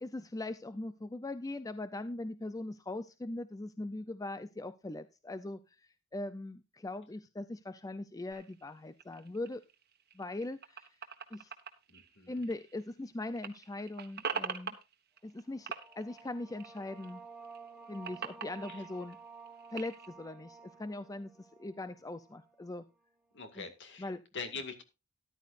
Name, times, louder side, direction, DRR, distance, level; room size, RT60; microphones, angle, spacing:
voice 1, 0.0-5.6 6.1-9.6 10.1-10.9 11.3-11.5 12.3-14.8 15.2-17.2 17.9-19.2 19.7-22.8 23.6-23.7 24.0-24.2, left 2 dB, 15° left, 12 dB, 0.5 m, -40 dB
sound 1, 8.3-13.0 13.3-15.4 15.7-17.1 17.4-20.1, right 6 dB, 50° right, 1.3 m, -43 dB
voice 2, 11.9-12.5 18.7-18.8 23.3-24.8, left 4 dB, 55° left, 8 dB, 2.1 m, -44 dB
sound 2, 15.5-22.8, right 4 dB, 5° right, 1.3 m, -53 dB
13.5 x 11.5 x 2.5 m, 0.27 s
head